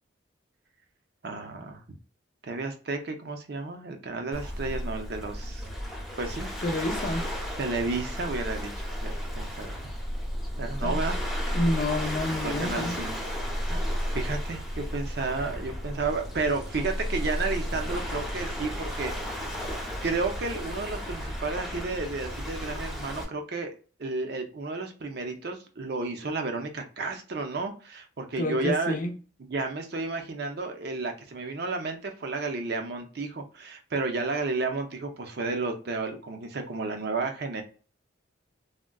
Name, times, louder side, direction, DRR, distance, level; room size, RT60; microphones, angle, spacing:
voice 1, 1.2-1.8 2.4-5.6 6.2-6.5 7.6-8.7 9.0-9.8 10.6-11.2 12.4-13.1 13.7-13.8 14.1-19.6 20.0-23.7 24.0-29.0 29.5-37.6, right 3 dB, 55° right, 0.5 m, -32 dB
Waves surf, 4.3-23.2, equal, ahead, 0.7 m, -33 dB
voice 2, 6.6-7.2 10.8-11.0 11.5-13.0 28.4-29.1, left 1 dB, 40° left, 0.5 m, -28 dB
3.6 x 2.1 x 2.2 m
head